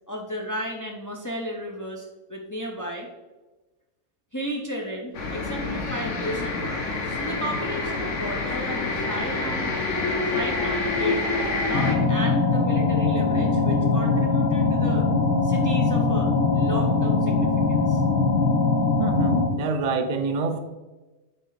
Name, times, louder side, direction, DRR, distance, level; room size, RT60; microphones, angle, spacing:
voice 1, 0.1-3.1 4.3-15.1 15.4-18.0, equal, 30° left, 0 dB, 0.3 m, -34 dB
sound 1, 5.1-11.9, left 3 dB, 60° left, 1.4 m, -27 dB
sound 2, 11.7-19.5, left 3 dB, 75° left, 1.5 m, -21 dB
voice 2, 19.0-20.6, right 4 dB, 75° right, 7 dB, 0.3 m, -26 dB
7.9 x 4.2 x 3.9 m, 1.2 s
omnidirectional pair, 1.5 m